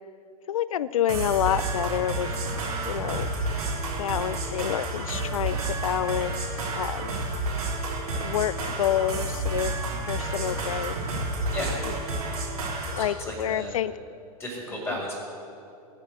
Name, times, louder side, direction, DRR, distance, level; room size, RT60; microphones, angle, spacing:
voice 1, 0.5-2.3 2.9-3.3 4.0-6.4 6.7-7.2 8.2-9.8 10.1-11.0 11.5-12.0 13.0-13.9 14.9-15.0, left 11 dB, 60° left, 19 dB, 0.6 m, -28 dB
sound 1, 1.1-13.1, right 2 dB, 65° right, 3.6 m, -30 dB
voice 2, 11.5-11.8 13.0-13.7 14.4-15.1, left 1 dB, 10° left, -2 dB, 5.0 m, -34 dB
19.5 x 8.2 x 8.1 m, 2.5 s
figure-of-eight pair, 100°, 20 cm